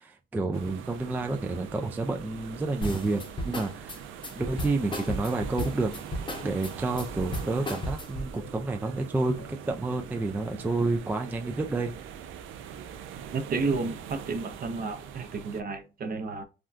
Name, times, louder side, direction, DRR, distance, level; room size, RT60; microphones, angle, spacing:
voice 1, 0.0-4.0 4.3-6.0 6.4-11.9, right 3 dB, 10° right, 0.3 m, -30 dB
sound 1, 0.5-15.6, right 8 dB, 85° right, 0.4 m, -43 dB
sound 2, 2.8-8.3, equal, 25° left, 0.8 m, -34 dB
sound 3, 3.4-3.8 4.4-4.8 5.4-5.7 6.4-6.7 7.4-7.7 8.4-8.7 9.4-9.6 10.4-10.6, left 5 dB, 60° left, 0.9 m, -52 dB
voice 2, 13.3-16.4, right 4 dB, 45° right, 0.7 m, -31 dB
3.5 x 2.2 x 2.5 m
cardioid pair, 90°, 20 cm